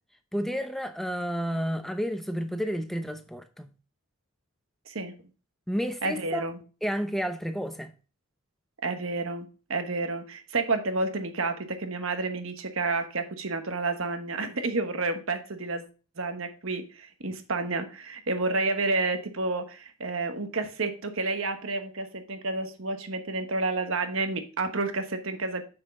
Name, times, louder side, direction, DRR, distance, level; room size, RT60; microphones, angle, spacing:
voice 1, 0.3-3.7 5.7-6.4 6.8-7.9, equal, ahead, 0.7 m, -31 dB
voice 2, 6.0-6.6 8.8-15.8 16.2-25.6, right 3 dB, 70° right, 1.2 m, -30 dB
7.2 x 6.1 x 3.7 m
head